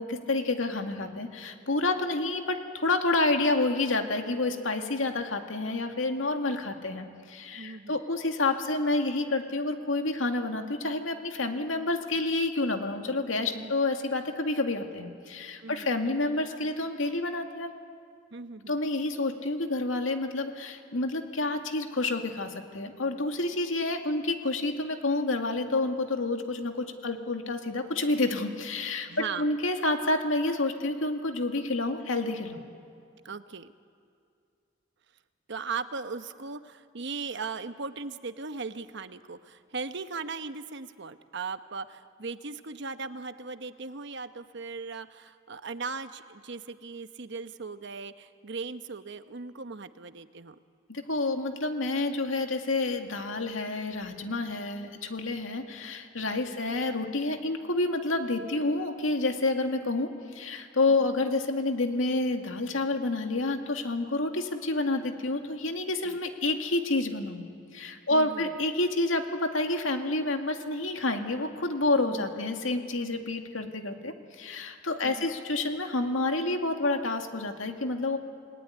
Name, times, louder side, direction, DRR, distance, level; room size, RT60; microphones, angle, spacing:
voice 1, 0.0-17.7 18.7-29.1 29.4-32.6 50.9-67.4 67.7-78.2, left 2 dB, 90° left, 4 dB, 2.3 m, -29 dB
voice 2, 7.5-8.0 13.5-13.8 15.6-15.9 18.3-18.8 29.1-29.6 33.2-33.7 35.5-50.6 56.3-56.6 66.0-66.2 68.1-68.6 72.1-72.3 73.0-73.3 75.0-75.3, right 4 dB, 65° right, 10 dB, 1.1 m, -38 dB
28.5 x 19.5 x 10.0 m, 2.3 s
head